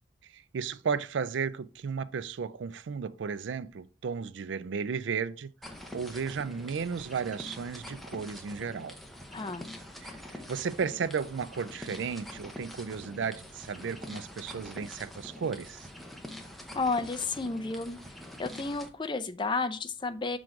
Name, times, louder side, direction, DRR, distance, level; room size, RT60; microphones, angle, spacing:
voice 1, 0.3-9.0 10.0-15.9, right 6 dB, 80° right, 0.4 m, -34 dB
sound 1, 5.6-18.9, left 1 dB, ahead, 0.8 m, -45 dB
voice 2, 9.3-9.7 16.7-18.0 18.4-20.4, left 3 dB, 25° left, 0.4 m, -32 dB
6.1 x 3.8 x 4.7 m
head